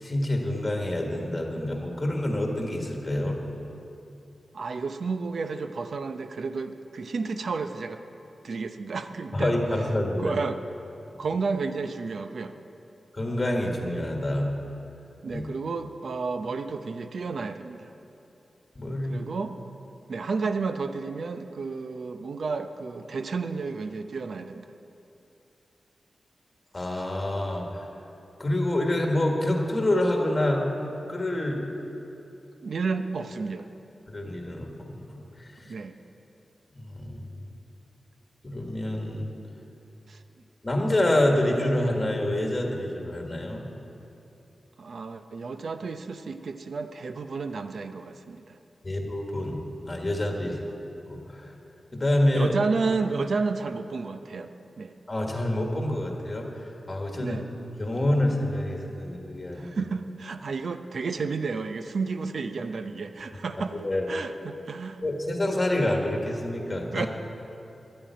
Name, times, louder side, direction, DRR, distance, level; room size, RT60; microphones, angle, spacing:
voice 1, 0.0-3.4 9.3-10.3 13.1-14.5 15.3-15.4 18.7-19.2 26.7-27.9 28.4-30.6 31.1-31.7 34.1-35.5 36.7-37.3 38.4-39.3 40.6-43.7 48.8-49.6 49.9-50.6 51.1-51.5 51.9-52.5 55.1-57.4 57.8-59.7 63.8-64.1 65.0-67.1, left 1 dB, 20° left, 1 dB, 1.5 m, -27 dB
voice 2, 4.5-8.0 8.4-9.6 10.2-10.6 11.2-12.5 15.2-17.9 19.1-19.5 20.1-24.7 32.6-33.7 35.7-36.0 40.1-40.2 44.8-48.6 50.4-50.6 52.3-54.9 57.2-57.5 59.5-63.7 64.1-65.0 66.9-67.1, right 4 dB, 55° right, 9 dB, 0.6 m, -31 dB
11.5 x 8.8 x 9.2 m, 2.8 s
wide cardioid pair, 175°, 0 cm